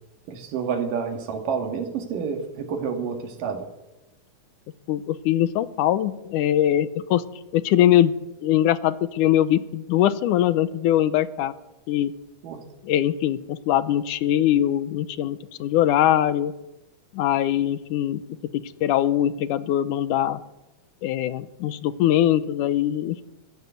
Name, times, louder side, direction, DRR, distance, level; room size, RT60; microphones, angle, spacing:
voice 1, 0.3-3.7 12.4-12.6, right 6 dB, 90° right, 4 dB, 3.6 m, -29 dB
voice 2, 4.9-7.2 7.5-8.1 8.4-11.5 11.9-12.1 12.8-16.5 17.1-18.2 18.5-20.4 21.0-23.2, left 12 dB, 75° left, 15 dB, 2.3 m, -22 dB
24.5 x 15.0 x 8.1 m, 1.0 s
omnidirectional pair, 3.7 m